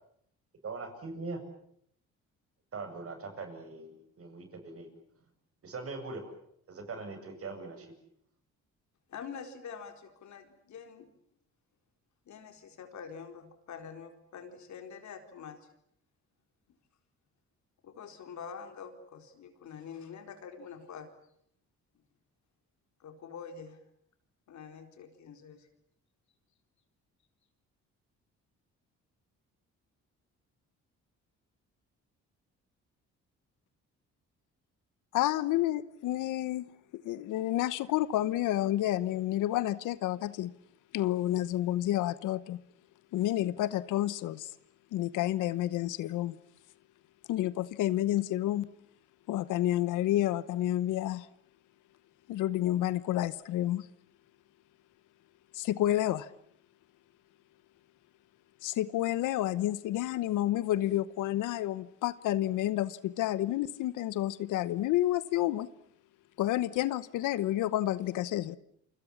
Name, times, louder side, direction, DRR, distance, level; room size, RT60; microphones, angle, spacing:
voice 1, 0.6-1.5 2.7-4.9 5.6-6.3 6.7-7.9, right 3 dB, 50° right, 7.7 m, -41 dB
voice 2, 9.1-11.1 12.3-15.7 17.8-21.1 23.0-23.8 24.5-25.7, left 6 dB, 70° left, 4.3 m, -46 dB
voice 3, 35.1-40.5 40.9-42.6 43.1-44.5 44.9-46.4 47.3-48.7 49.3-51.3 52.3-53.9 55.5-56.3 58.6-65.7 66.4-68.6, left 14 dB, 90° left, 1.0 m, -30 dB
29.0 x 25.5 x 7.3 m
cardioid pair, 90°, 30 cm